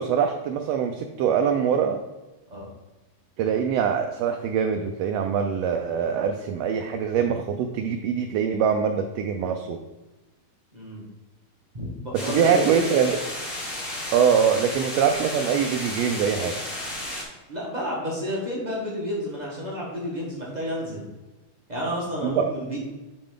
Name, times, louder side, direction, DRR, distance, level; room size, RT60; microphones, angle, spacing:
voice 1, 0.0-2.0 3.4-9.8 12.1-13.2 14.1-16.6 22.2-22.5, right 7 dB, 80° right, 5 dB, 1.5 m, -23 dB
voice 2, 10.7-11.1 11.7-12.7 17.5-21.0 21.7-22.8, equal, 55° right, -4 dB, 0.4 m, -31 dB
sound 1, 12.1-17.2, left 1 dB, 30° left, 1.1 m, -33 dB
7.0 x 5.1 x 3.7 m, 1.1 s
omnidirectional pair, 3.3 m